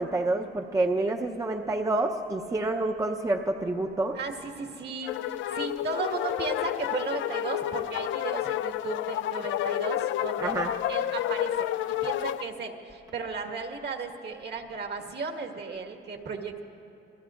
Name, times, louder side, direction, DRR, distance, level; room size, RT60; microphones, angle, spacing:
voice 1, 0.0-4.2 10.4-10.7, right 2 dB, 15° right, 2 dB, 0.7 m, -28 dB
voice 2, 4.1-10.5 10.9-11.7 12.0-16.6, right 4 dB, 55° right, 3 dB, 1.6 m, -35 dB
sound 1, 5.0-12.4, left 12 dB, 75° left, 0.4 m, -30 dB
27.0 x 21.0 x 2.5 m, 2.8 s
cardioid pair, 90°, 20 cm